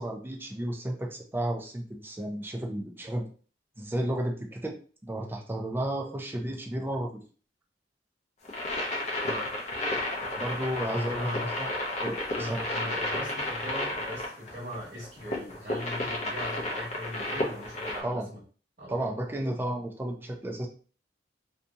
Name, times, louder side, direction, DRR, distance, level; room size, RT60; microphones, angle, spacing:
voice 1, 0.0-3.3 3.8-4.8 5.0-7.1 10.4-11.7 12.0-12.6 18.0-18.3 18.9-20.7, right 1 dB, 10° right, 1 dB, 0.4 m, -33 dB
sound 1, 8.4-18.0, left 1 dB, 40° left, 0.6 m, -32 dB
voice 2, 10.9-11.5 12.3-18.4 18.8-19.0, equal, 55° right, -9 dB, 1.1 m, -39 dB
2.7 x 2.7 x 2.3 m, 0.40 s
head